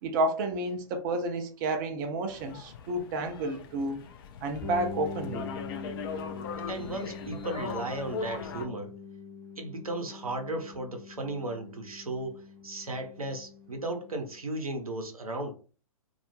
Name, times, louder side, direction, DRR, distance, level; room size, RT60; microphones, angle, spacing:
voice 1, 0.0-4.0 4.4-5.5, right 2 dB, 35° right, 0.5 m, -30 dB
sound 1, 2.3-8.7, left 5 dB, 40° left, 0.4 m, -40 dB
sound 2, 4.6-14.3, left 4 dB, 15° left, 0.7 m, -43 dB
voice 2, 6.7-9.0 9.6-15.5, right 2 dB, 85° right, 0.7 m, -35 dB
2.3 x 2.0 x 2.9 m
figure-of-eight pair, 120°, 18 cm